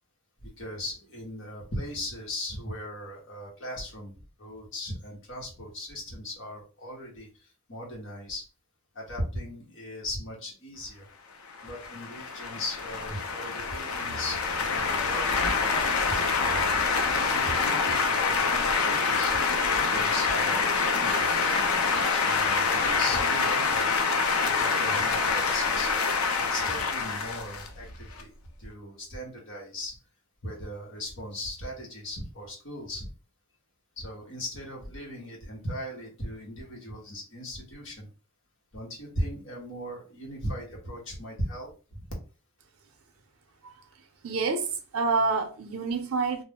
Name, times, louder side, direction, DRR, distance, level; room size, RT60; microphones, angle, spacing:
voice 1, 0.4-8.4 8.9-11.1 11.6-16.3 16.9-19.4 19.9-21.3 21.9-23.9 24.4-25.9 26.3-28.3 28.6-30.0 30.4-33.1 34.0-38.1 38.7-42.1, left 1 dB, 60° left, 1.0 m, -38 dB
sound 1, 11.5-28.2, left 4 dB, 75° left, 0.5 m, -26 dB
voice 2, 44.2-46.4, right 4 dB, 80° right, 0.5 m, -27 dB
2.4 x 2.0 x 3.4 m
head